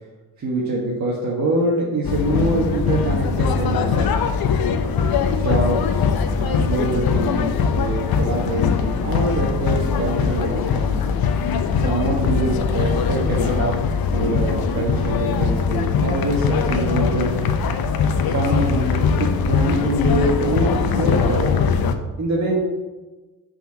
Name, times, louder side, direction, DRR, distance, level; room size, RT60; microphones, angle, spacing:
voice 1, 0.4-4.2 5.3-6.1 6.4-11.1 11.8-13.8 14.1-17.4 18.2-21.5 22.2-22.6, right 2 dB, 40° right, -4 dB, 1.6 m, -24 dB
sound 1, 2.0-22.0, left 6 dB, 60° left, 0.8 m, -21 dB
5.7 x 4.4 x 5.8 m, 1.2 s
hypercardioid pair, 50°, 42 cm